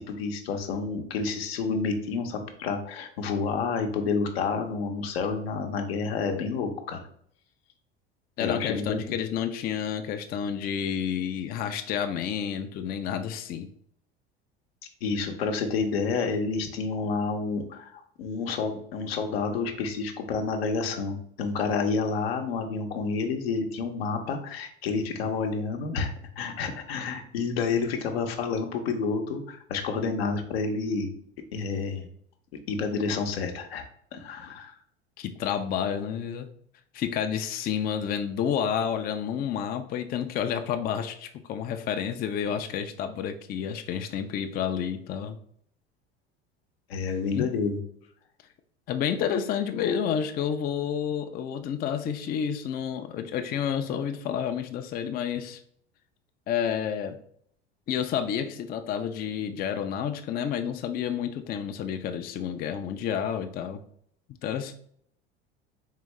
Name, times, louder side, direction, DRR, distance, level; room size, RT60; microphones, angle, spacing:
voice 1, 0.1-7.0 8.4-8.9 15.0-31.1 31.5-32.1 32.7-33.8 34.1-34.7 46.9-47.8, left 4 dB, 75° left, 4 dB, 0.7 m, -29 dB
voice 2, 8.4-13.7 35.2-36.5 36.9-45.4 47.3-47.5 48.9-55.6 56.5-57.2 57.9-63.8 64.4-64.7, left 8 dB, 30° left, 7 dB, 0.4 m, -30 dB
3.7 x 3.4 x 3.1 m, 0.65 s
hypercardioid pair, 75°, 31 cm